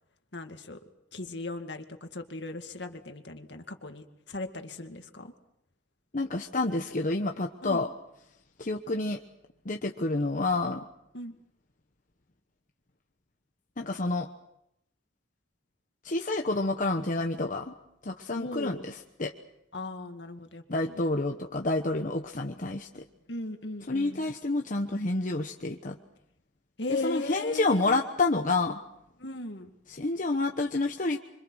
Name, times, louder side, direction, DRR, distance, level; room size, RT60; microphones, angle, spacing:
voice 1, 0.3-0.8 1.1-5.3 7.6-7.8 11.1-11.4 18.4-18.8 19.7-21.0 23.3-24.3 26.8-28.0 29.2-29.7, left 2 dB, 65° left, 6 dB, 2.2 m, -37 dB
voice 2, 6.1-7.9 8.6-9.2 9.6-10.8 13.8-14.3 16.0-17.7 18.0-19.3 20.7-23.0 23.9-26.0 27.0-28.8 29.9-31.2, left 2 dB, 45° left, 3 dB, 1.2 m, -29 dB
26.5 x 25.0 x 6.4 m, 0.78 s
head